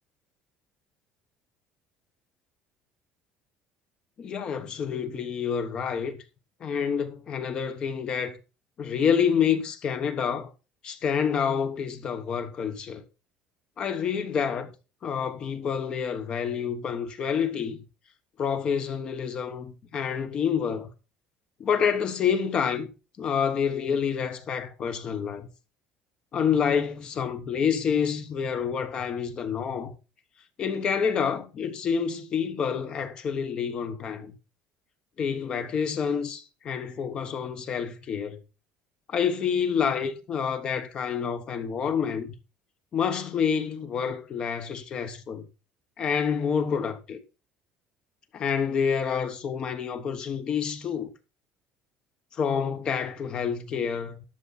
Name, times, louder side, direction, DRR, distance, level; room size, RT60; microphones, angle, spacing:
voice 1, 4.2-6.2 6.6-8.4 8.8-10.5 10.8-13.0 13.8-14.7 15.0-17.8 18.4-20.9 21.6-22.9 23.2-25.5 26.3-29.9 30.6-34.4 35.2-38.4 39.1-42.3 42.9-45.5 46.0-47.2 48.3-51.1 52.3-54.2, left 7 dB, 30° left, 1.3 m, -28 dB
12.0 x 7.2 x 4.2 m
cardioid pair, 170°, 3 cm